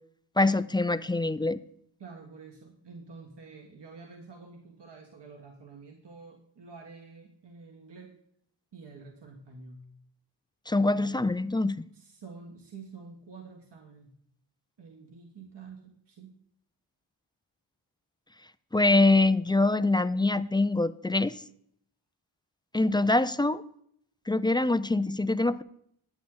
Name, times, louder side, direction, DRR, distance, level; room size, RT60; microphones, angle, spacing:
voice 1, 0.4-1.6 10.7-11.8 18.7-21.4 22.7-23.6 24.3-25.6, left 2 dB, 10° left, 14 dB, 0.3 m, -24 dB
voice 2, 2.0-8.1 8.7-9.8 10.8-11.3 11.9-14.1 14.8-16.3, right 4 dB, 60° right, 1 dB, 1.6 m, -48 dB
11.0 x 8.4 x 3.9 m, 0.69 s
cardioid pair, 55°, 47 cm